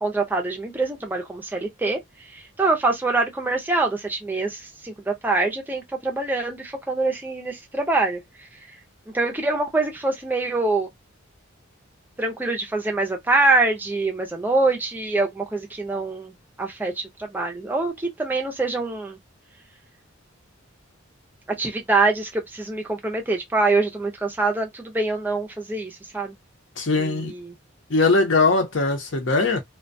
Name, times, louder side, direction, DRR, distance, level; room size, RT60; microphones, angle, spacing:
voice 1, 0.0-2.0 2.3-8.2 9.1-10.9 12.2-19.2 21.6-26.4 27.0-27.5, right 3 dB, 10° right, 0.5 m, -24 dB
voice 2, 26.8-27.3 27.9-29.6, left 3 dB, 60° left, 0.7 m, -20 dB
2.2 x 2.2 x 2.5 m
head